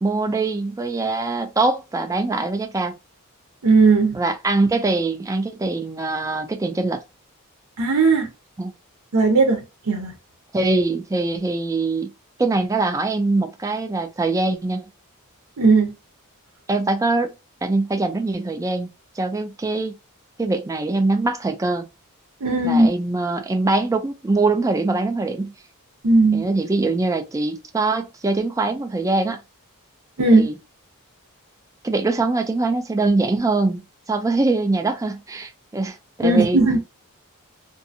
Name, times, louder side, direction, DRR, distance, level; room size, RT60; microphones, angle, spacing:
voice 1, 0.0-2.9 4.1-7.0 8.6-8.7 10.5-12.1 12.4-14.8 16.7-17.3 17.6-18.9 19.2-20.0 20.4-21.9 22.6-25.5 26.3-29.4 30.4-30.6 31.8-36.6, right 3 dB, 15° right, 0.3 m, -23 dB
voice 2, 3.6-4.2 7.8-8.3 9.1-9.6 9.9-10.1 15.6-15.9 22.4-22.9 26.0-26.5 30.2-30.5 36.2-36.8, right 3 dB, 75° right, 0.7 m, -16 dB
2.6 x 2.5 x 2.6 m
head